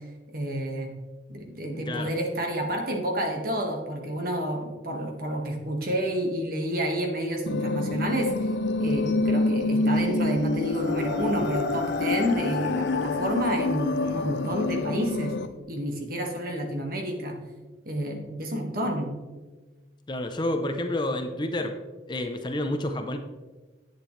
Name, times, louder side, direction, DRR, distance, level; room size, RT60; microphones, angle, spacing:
voice 1, 0.3-0.9 1.3-8.5 8.8-15.3 15.7-17.4 17.8-19.1, equal, 50° right, 2 dB, 1.6 m, -29 dB
sound 1, 7.5-15.5, left 2 dB, 65° left, 0.6 m, -27 dB
voice 2, 20.1-21.8 22.1-23.2, left 1 dB, 25° left, 6 dB, 0.6 m, -29 dB
10.5 x 8.3 x 3.2 m, 1.3 s
head